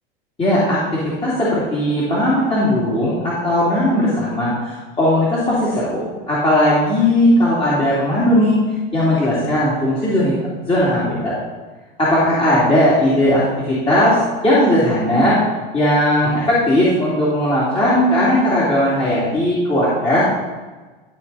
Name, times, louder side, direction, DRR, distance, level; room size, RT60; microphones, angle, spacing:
voice 1, 0.4-8.6 8.9-11.3 12.0-13.4 13.7-15.4 15.7-20.3, left 1 dB, 20° left, -8 dB, 2.8 m, -17 dB
13.0 x 4.6 x 4.2 m, 1.2 s
hypercardioid pair, 95°, 30 cm